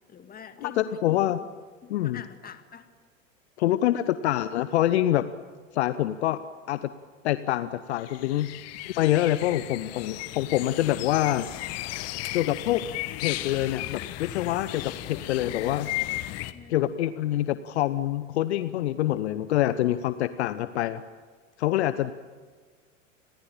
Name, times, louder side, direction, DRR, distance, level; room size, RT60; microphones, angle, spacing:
voice 1, 0.1-1.3 1.8-2.9 11.9-12.0 16.5-16.9, left 7 dB, 25° left, 9 dB, 2.2 m, -46 dB
voice 2, 0.6-1.4 1.9-2.2 3.6-5.3 5.7-6.4 6.7-6.9 7.2-8.5 8.9-11.5 12.3-12.8 13.1-16.3 16.7-21.0 21.6-22.1, left 13 dB, 55° left, 14 dB, 1.0 m, -26 dB
sound 1, 8.0-16.5, left 17 dB, 40° left, 1.5 m, -35 dB
29.5 x 21.5 x 8.8 m, 1.5 s
figure-of-eight pair, 85°, 38 cm